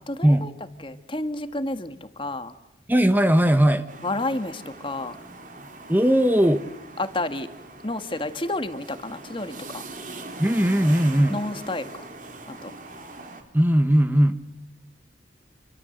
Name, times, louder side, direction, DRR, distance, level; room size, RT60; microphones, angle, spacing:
voice 1, 0.1-0.5 0.8-2.5 4.0-5.2 7.0-7.5 7.8-9.8 11.3-11.9 12.5-12.7, left 2 dB, 30° left, 9 dB, 1.8 m, -30 dB
voice 2, 2.9-3.9 5.9-6.6 10.4-11.4 13.5-14.4, equal, 10° right, 9 dB, 1.2 m, -19 dB
sound 1, 3.9-13.4, right 2 dB, 45° right, 4.3 m, -41 dB
28.5 x 25.0 x 8.0 m, 0.89 s
head